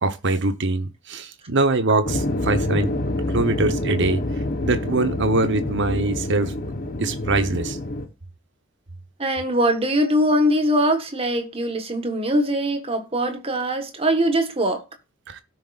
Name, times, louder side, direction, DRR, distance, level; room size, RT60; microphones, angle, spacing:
voice 1, 0.0-2.9 3.3-4.2 4.6-6.5 7.0-7.8 15.3-15.4, right 2 dB, 60° right, 1.1 m, -23 dB
sound 1, 2.0-8.1, left 1 dB, 45° left, 1.2 m, -27 dB
voice 2, 9.2-14.8, equal, 25° right, 1.5 m, -22 dB
17.0 x 6.4 x 2.5 m
head